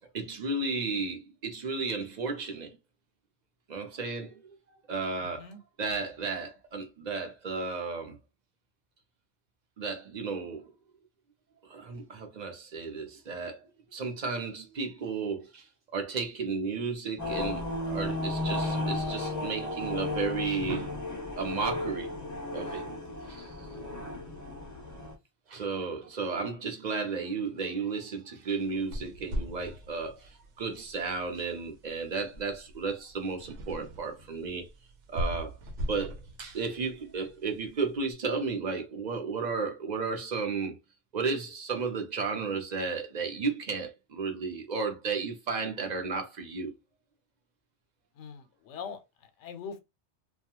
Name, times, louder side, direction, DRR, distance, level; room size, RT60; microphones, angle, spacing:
voice 1, 0.1-2.8 3.7-4.5 4.9-5.5 5.8-8.2 9.8-10.7 11.7-15.6 15.9-20.9 21.4-22.1 22.5-22.9 23.3-23.5 25.5-34.7 35.1-35.6 35.9-40.8 41.1-46.7, right 4 dB, 50° right, 0.6 m, -33 dB
voice 2, 5.2-5.6 48.2-49.8, left 6 dB, 80° left, 0.9 m, -43 dB
sound 1, 17.2-25.1, left 2 dB, 30° left, 0.3 m, -34 dB
sound 2, 28.6-38.0, equal, 85° right, 0.9 m, -40 dB
2.3 x 2.2 x 2.8 m
omnidirectional pair, 1.2 m